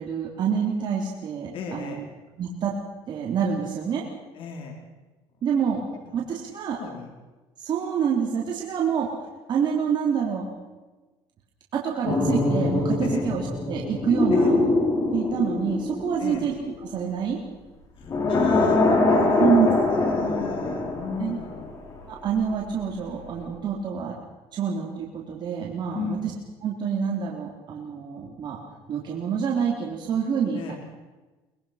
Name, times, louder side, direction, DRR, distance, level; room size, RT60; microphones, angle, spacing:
voice 1, 0.0-2.0 2.4-2.7 3.1-4.0 5.4-5.8 6.1-6.8 7.6-9.1 9.5-10.5 11.7-14.6 15.1-16.5 16.8-17.4 19.4-19.7 21.2-21.4 22.1-24.2 24.5-26.2 26.6-28.6 28.9-30.7, right 7 dB, 50° right, -2 dB, 3.6 m, -27 dB
voice 2, 1.5-2.0 4.3-4.7 6.0-7.1 13.0-13.2 14.3-14.5 16.2-16.5 18.0-21.6 25.9-26.2 30.5-30.7, left 5 dB, 60° left, 1 dB, 4.3 m, -35 dB
sound 1, 12.0-17.1 18.0-22.0 22.2-22.5, left 2 dB, 35° left, 6.0 m, -23 dB
23.5 x 21.5 x 5.9 m, 1.2 s
cardioid pair, 120°, 10 cm